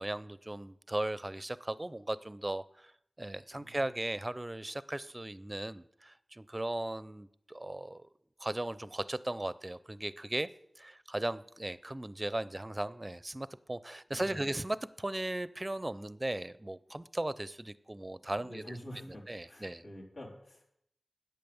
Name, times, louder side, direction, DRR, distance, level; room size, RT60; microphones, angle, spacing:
voice 1, 0.0-2.9 3.2-8.1 8.4-10.5 10.8-18.6 19.0-19.8, right 1 dB, 25° right, 17 dB, 0.5 m, -37 dB
voice 2, 14.1-14.6 18.4-20.6, equal, 65° left, -3 dB, 4.0 m, -48 dB
10.5 x 8.4 x 7.0 m, 0.74 s
wide cardioid pair, 75°, 0 cm